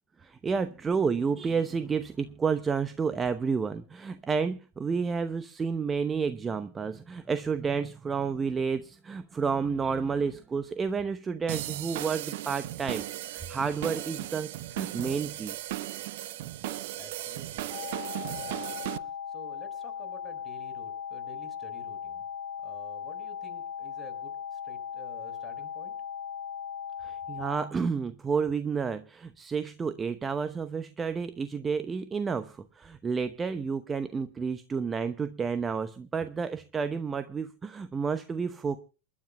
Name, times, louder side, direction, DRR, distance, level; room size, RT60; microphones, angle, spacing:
voice 1, 0.2-15.6 27.0-38.8, right 5 dB, 15° right, 11 dB, 0.9 m, -30 dB
sound 1, 11.5-19.0, right 14 dB, 50° right, 0.9 m, -36 dB
voice 2, 17.0-17.7 18.1-18.7 19.0-22.2 22.6-25.9, equal, 5° left, 6 dB, 4.7 m, -51 dB
sound 2, 17.7-27.7, left 7 dB, 25° left, 4.5 m, -38 dB
28.5 x 12.0 x 2.3 m, 0.33 s
figure-of-eight pair, 90°, 0 cm